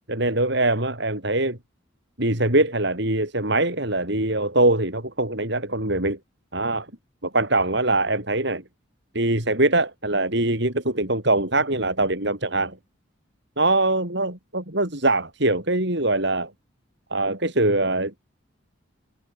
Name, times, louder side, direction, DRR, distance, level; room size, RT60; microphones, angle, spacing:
voice 1, 0.1-1.6 2.2-6.2 6.5-6.9 7.2-8.6 9.1-12.8 13.6-16.5 17.1-18.1, right 2 dB, 55° right, 5.7 m, -23 dB
head